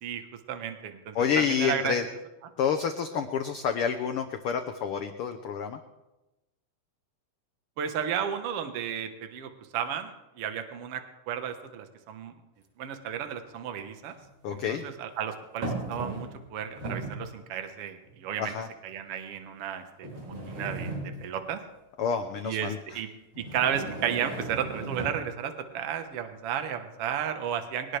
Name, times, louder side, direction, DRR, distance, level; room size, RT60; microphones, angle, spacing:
voice 1, 0.5-2.0 7.8-12.3 12.8-14.1 14.5-18.5 18.8-21.6 22.4-23.1 23.4-28.0, right 8 dB, 55° right, 7 dB, 2.0 m, -33 dB
voice 2, 1.1-2.0 2.6-5.8 14.4-14.8 18.4-18.7 22.0-23.0, left 7 dB, 75° left, 6 dB, 1.3 m, -28 dB
sound 1, 12.6-12.7 14.1-14.8 15.6-16.4 16.7-17.3 18.1-18.2 18.9-19.0 20.0-21.5 23.3-25.3, right 2 dB, 80° right, 7.3 m, -36 dB
22.0 x 18.5 x 3.4 m, 1.0 s
omnidirectional pair, 3.5 m